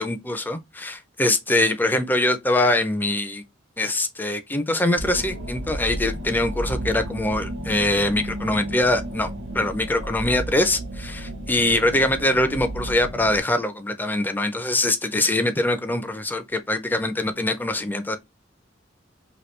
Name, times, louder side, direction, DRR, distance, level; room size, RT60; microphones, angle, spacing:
voice 1, 0.0-3.4 3.8-9.3 9.5-18.2, left 1 dB, 10° left, 0.4 m, -23 dB
sound 1, 5.0-13.4, right 1 dB, 80° right, 1.1 m, -33 dB
2.9 x 2.6 x 3.1 m
head